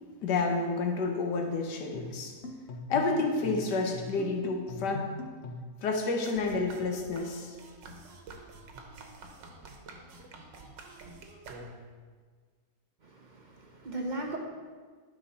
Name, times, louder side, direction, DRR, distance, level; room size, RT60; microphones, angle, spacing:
voice 1, 0.2-2.4 2.9-5.1 5.8-7.5, left 3 dB, 70° left, 3 dB, 1.6 m, -30 dB
sound 1, 1.9-5.8, left 2 dB, 50° left, 0.9 m, -41 dB
sound 2, 6.2-12.0, right 3 dB, 90° right, 1.7 m, -48 dB
voice 2, 13.0-14.4, right 2 dB, 40° right, 1 dB, 0.7 m, -37 dB
11.5 x 5.7 x 4.2 m, 1.5 s
omnidirectional pair, 1.9 m